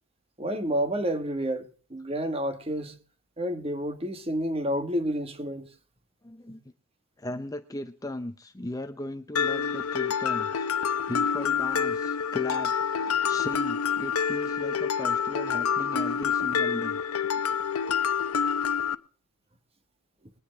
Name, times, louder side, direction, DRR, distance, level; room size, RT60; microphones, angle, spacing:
voice 1, 0.4-3.0 3.4-5.7, equal, 25° right, 1.3 m, -30 dB
voice 2, 6.2-6.6 7.2-10.7 11.1-17.0 17.4-17.5 18.2-18.3, left 1 dB, 15° left, 0.6 m, -37 dB
Mallet percussion, 9.4-18.9, left 7 dB, 90° left, 0.7 m, -27 dB
21.5 x 9.9 x 3.3 m
head